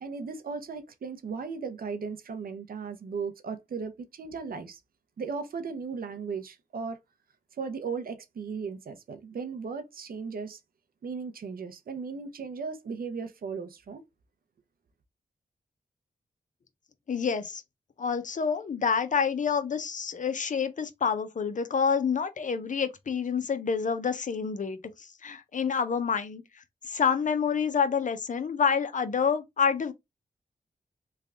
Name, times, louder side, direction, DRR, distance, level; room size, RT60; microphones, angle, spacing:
voice 1, 0.0-4.8 5.2-7.0 7.6-10.6 11.0-14.0, right 5 dB, 75° right, 0.7 m, -36 dB
voice 2, 17.1-17.6 18.0-29.9, left 6 dB, 55° left, 0.7 m, -28 dB
3.3 x 2.3 x 3.5 m
cardioid pair, 55°, 15 cm